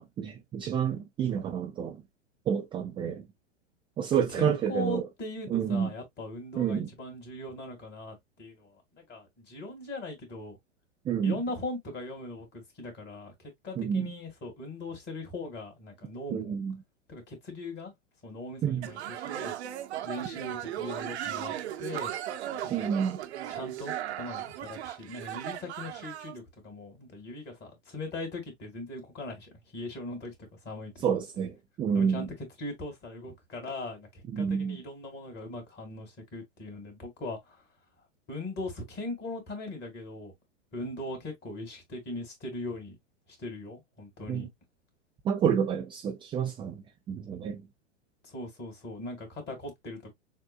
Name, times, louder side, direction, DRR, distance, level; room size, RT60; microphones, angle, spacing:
voice 1, 0.0-2.0 2.5-3.2 4.0-5.0 5.5-5.9 6.6-6.9 11.1-11.4 13.8-14.1 16.3-16.8 18.6-18.9 22.7-23.2 31.0-32.3 34.3-34.8 44.3-44.5 45.2-47.6, right 8 dB, 15° right, 0.4 m, -29 dB
voice 2, 4.1-10.6 11.2-16.6 17.1-17.9 18.2-19.6 20.0-22.1 22.6-22.9 23.5-31.0 31.9-37.6 38.3-40.3 40.7-43.0 43.4-44.5 48.2-50.1, left 2 dB, 30° left, 2.2 m, -40 dB
sound 1, 18.8-26.3, right 11 dB, 60° right, 0.9 m, -37 dB
6.6 x 2.2 x 2.4 m
figure-of-eight pair, 105°, 37 cm